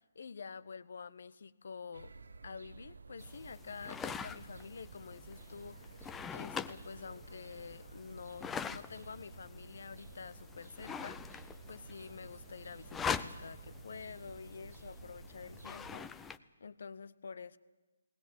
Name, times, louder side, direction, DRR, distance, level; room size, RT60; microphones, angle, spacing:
voice 1, 0.0-2.1 2.4-6.0 6.3-16.1 16.6-17.6, left 5 dB, 60° left, 17 dB, 0.9 m, -48 dB
sound 1, 1.9-16.0, right 3 dB, 70° right, 0.8 m, -53 dB
sound 2, 3.2-16.4, left 6 dB, 10° left, 0.7 m, -44 dB
Writing, 8.5-16.0, equal, 85° left, 2.9 m, -63 dB
19.5 x 19.5 x 9.2 m, 1.2 s
figure-of-eight pair, 140°, 0 cm